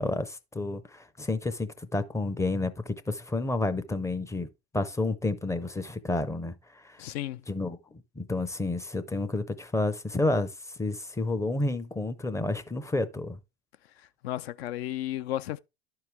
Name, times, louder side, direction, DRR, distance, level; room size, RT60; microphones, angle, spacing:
voice 1, 0.0-4.5 4.7-6.5 6.8-7.0 7.5-10.5 10.8-13.4, left 2 dB, 10° left, 0.5 m, -30 dB
voice 2, 7.0-7.4 14.2-15.6, left 13 dB, 60° left, 0.5 m, -33 dB
11.5 x 4.7 x 3.4 m
hypercardioid pair, 90°, 35 cm